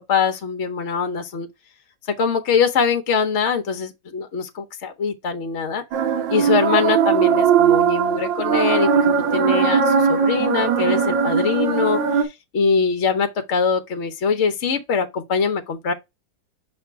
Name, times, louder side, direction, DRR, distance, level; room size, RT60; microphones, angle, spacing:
voice 1, 0.1-1.5 2.2-5.8 6.3-12.2 12.5-15.9, left 5 dB, 45° left, 1.0 m, -22 dB
sound 1, 5.9-12.2, right 7 dB, 75° right, 1.7 m, -19 dB
6.4 x 3.2 x 4.6 m
omnidirectional pair, 2.0 m